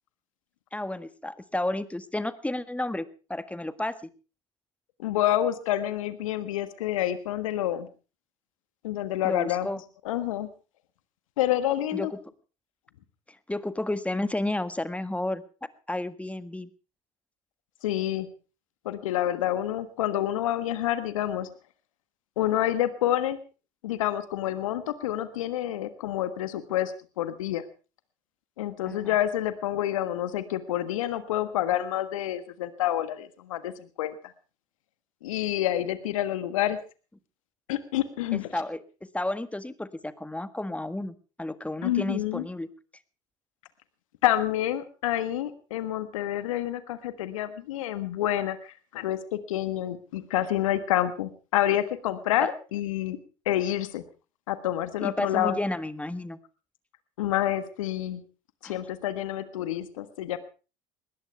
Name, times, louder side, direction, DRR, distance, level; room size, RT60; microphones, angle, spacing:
voice 1, 0.7-4.1 9.2-9.8 11.9-12.2 13.5-15.4 15.9-16.7 28.9-29.1 38.3-38.8 39.1-42.7 52.4-52.5 55.0-56.4 58.6-58.8, left 1 dB, 10° left, 13 dB, 1.7 m, -32 dB
voice 2, 5.0-7.9 8.8-9.7 10.0-10.5 11.4-12.1 17.8-18.3 18.8-21.5 22.4-23.4 23.8-27.6 28.6-33.7 34.0-34.1 35.2-36.8 37.7-38.5 41.8-42.5 44.2-53.2 53.4-54.0 54.5-55.6 57.2-58.2 58.6-60.4, left 12 dB, 75° left, 12 dB, 1.5 m, -28 dB
21.0 x 18.5 x 3.4 m, 0.35 s
hypercardioid pair, 65°, 17 cm